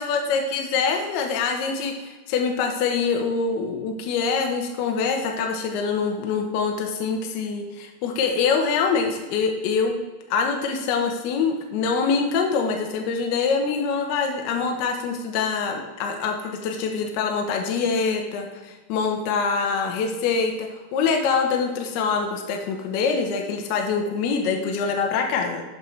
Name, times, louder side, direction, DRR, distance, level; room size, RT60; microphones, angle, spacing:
voice 1, 0.0-10.0 10.3-25.6, left 5 dB, 50° left, 3 dB, 0.8 m, -24 dB
5.8 x 5.7 x 3.2 m, 1.2 s
supercardioid pair, 150°, 0 cm